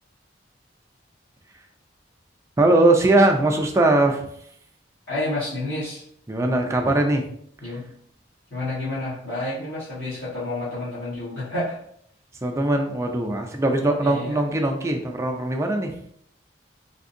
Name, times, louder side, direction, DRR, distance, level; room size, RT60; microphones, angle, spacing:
voice 1, 2.6-4.2 6.3-7.2 7.7-7.8 12.4-15.9, right 2 dB, 15° right, 2 dB, 0.4 m, -20 dB
voice 2, 5.1-6.0 7.6-7.8 8.5-11.8 14.0-14.4, left 2 dB, 70° left, -11 dB, 1.3 m, -29 dB
3.5 x 2.6 x 2.6 m, 0.67 s
head